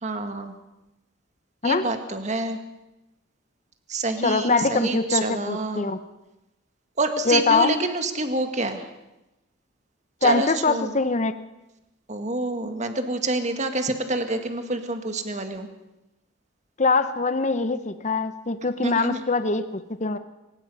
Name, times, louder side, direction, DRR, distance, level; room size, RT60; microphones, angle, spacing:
voice 1, 0.0-0.6 1.6-2.6 3.9-5.9 7.0-8.9 10.2-11.0 12.1-15.7 18.8-19.2, right 2 dB, 35° right, 7 dB, 1.9 m, -27 dB
voice 2, 4.2-6.0 7.3-7.7 10.2-11.3 16.8-20.2, left 3 dB, 35° left, 11 dB, 0.8 m, -23 dB
23.5 x 20.0 x 5.5 m, 0.96 s
head